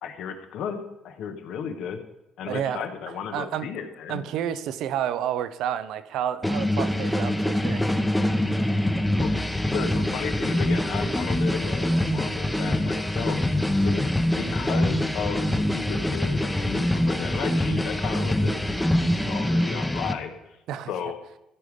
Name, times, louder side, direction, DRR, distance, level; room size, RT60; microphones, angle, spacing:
voice 1, 0.0-0.8 1.0-2.0 2.4-4.2 9.2-9.3 9.6-13.4 13.8-20.6 20.9-21.1, left 7 dB, 70° left, 7 dB, 1.1 m, -34 dB
voice 2, 2.5-3.7 4.1-7.9 8.6-8.7 20.7-20.9, right 10 dB, 75° right, 14 dB, 0.5 m, -30 dB
sound 1, 6.4-20.1, left 1 dB, 5° left, 0.8 m, -24 dB
14.0 x 4.9 x 5.1 m, 0.92 s
supercardioid pair, 80°, 0 cm